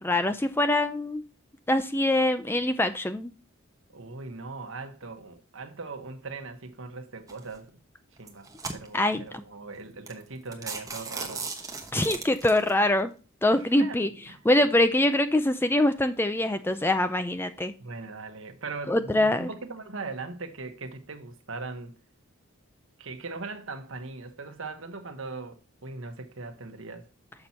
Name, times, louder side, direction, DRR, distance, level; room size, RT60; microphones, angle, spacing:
voice 1, 0.0-1.2 1.7-3.3 8.9-9.2 11.9-13.1 13.4-14.1 14.4-17.7 18.9-19.5, left 1 dB, 10° left, 0.4 m, -24 dB
voice 2, 3.9-7.8 8.2-11.5 13.5-14.4 17.8-21.9 23.0-27.1, right 3 dB, 65° right, 1.1 m, -40 dB
sound 1, 7.3-7.6 8.2-9.2 9.7-9.8 10.1-10.2 10.5-12.7, right 4 dB, 15° right, 1.0 m, -37 dB
6.9 x 6.0 x 4.2 m
head